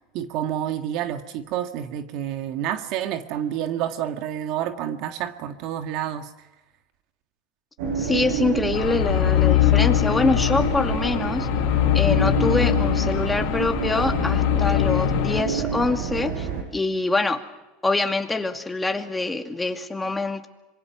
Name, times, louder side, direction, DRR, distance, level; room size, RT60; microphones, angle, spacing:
voice 1, 0.1-6.3, right 10 dB, 60° right, 7 dB, 1.7 m, -29 dB
sound 1, 7.8-16.6, right 6 dB, 75° right, 7.3 m, -28 dB
voice 2, 8.0-11.5 11.9-16.5 16.7-17.4 17.8-20.5, left 3 dB, 10° left, 4 dB, 2.3 m, -25 dB
sound 2, 8.7-15.4, left 21 dB, 65° left, 0.8 m, -22 dB
26.0 x 23.5 x 6.1 m, 1.1 s
supercardioid pair, 120°, 0 cm